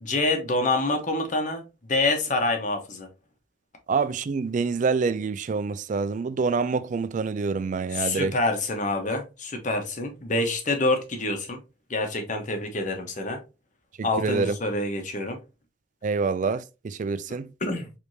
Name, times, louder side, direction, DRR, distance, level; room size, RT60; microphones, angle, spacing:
voice 1, 0.0-3.1 7.9-11.6 11.9-13.4 14.0-15.4 17.6-17.9, left 2 dB, 40° left, 1.0 m, -26 dB
voice 2, 3.9-8.3 14.0-14.6 16.0-17.5, right 4 dB, 40° right, 0.3 m, -26 dB
4.8 x 3.4 x 2.7 m
head